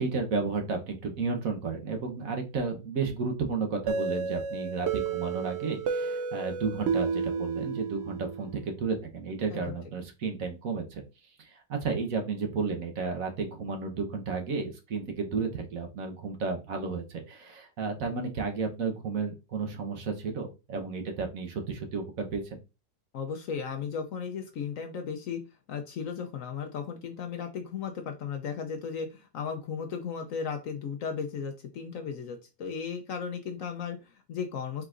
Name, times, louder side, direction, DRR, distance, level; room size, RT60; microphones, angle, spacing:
voice 1, 0.0-11.0 11.4-22.4, right 4 dB, 60° right, 4 dB, 1.3 m, -32 dB
sound 1, 3.9-8.5, right 5 dB, 80° right, 0.6 m, -31 dB
voice 2, 23.1-25.4 25.7-34.8, left 6 dB, 65° left, 6 dB, 0.9 m, -35 dB
4.6 x 3.9 x 2.5 m, 0.28 s
omnidirectional pair, 1.8 m